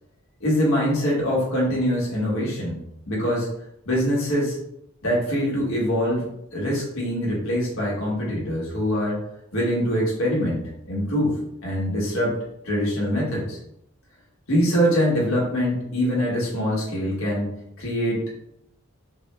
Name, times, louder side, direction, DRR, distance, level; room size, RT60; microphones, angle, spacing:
voice 1, 0.4-2.8 3.1-3.5 3.8-4.5 5.0-6.2 6.5-9.2 9.5-10.6 10.9-11.4 11.6-12.4 12.6-13.6 14.5-17.5 17.8-18.2, equal, 65° left, -5 dB, 1.4 m, -23 dB
4.3 x 2.2 x 3.3 m, 0.77 s
head